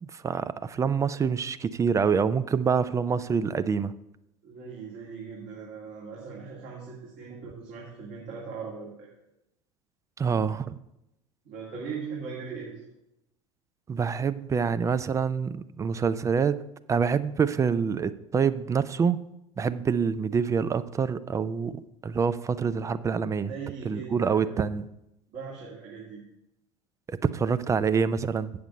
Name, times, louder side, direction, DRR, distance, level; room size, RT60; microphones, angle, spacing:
voice 1, 0.0-3.9 10.2-10.8 13.9-16.6 16.9-19.3 19.6-23.5 23.8-24.9 27.1-28.5, right 6 dB, 20° right, 14 dB, 0.4 m, -26 dB
voice 2, 4.4-9.1 11.4-12.8 23.5-24.6 25.3-26.2, right 5 dB, 50° right, -4 dB, 2.3 m, -39 dB
8.1 x 6.7 x 5.4 m, 0.87 s
figure-of-eight pair, 70°, 16 cm